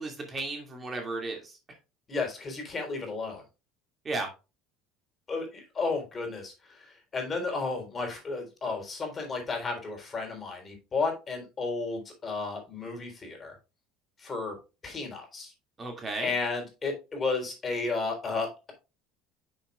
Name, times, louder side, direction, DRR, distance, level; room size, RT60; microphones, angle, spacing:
voice 1, 0.0-1.6 4.0-4.3 15.8-16.3, right 2 dB, 25° right, 2 dB, 2.2 m, -34 dB
voice 2, 2.1-3.4 5.3-6.9 7.1-13.5 14.2-14.6 14.8-15.5 16.2-18.7, left 3 dB, 25° left, 3 dB, 3.7 m, -33 dB
9.4 x 6.6 x 2.3 m, 0.28 s
supercardioid pair, 115°, 0 cm